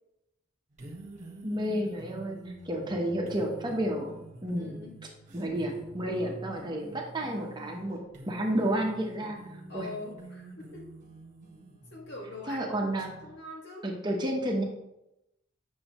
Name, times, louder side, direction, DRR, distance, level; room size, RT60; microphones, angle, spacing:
sound 1, 0.7-13.3, right 1 dB, 40° right, 1.4 m, -47 dB
voice 1, 1.4-4.1 4.4-4.8 5.3-9.4 9.7-9.9 12.5-13.1 13.8-14.6, right 1 dB, 20° right, 0 dB, 1.0 m, -31 dB
voice 2, 4.6-5.0 9.7-10.8 11.9-12.9 13.2-13.9, left 2 dB, 55° left, -2 dB, 1.9 m, -43 dB
8.5 x 6.3 x 3.0 m, 0.90 s
head